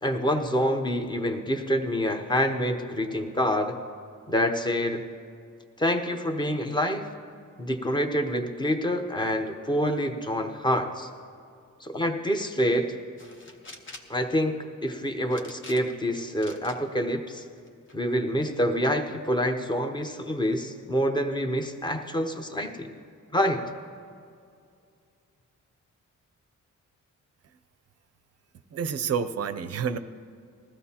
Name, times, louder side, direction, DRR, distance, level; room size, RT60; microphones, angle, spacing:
voice 1, 0.0-3.8 4.3-5.1 5.8-7.1 7.6-11.1 11.8-13.0 14.1-17.4 17.9-22.9 23.3-23.6, equal, 15° left, 5 dB, 0.7 m, -27 dB
sound 1, 13.2-14.2 15.3-16.1 16.4-16.8 17.3-18.0, left 2 dB, 40° left, 1.0 m, -46 dB
voice 2, 28.7-30.0, right 7 dB, 50° right, 11 dB, 0.5 m, -29 dB
20.0 x 14.5 x 2.9 m, 2.4 s
wide cardioid pair, 170°, 32 cm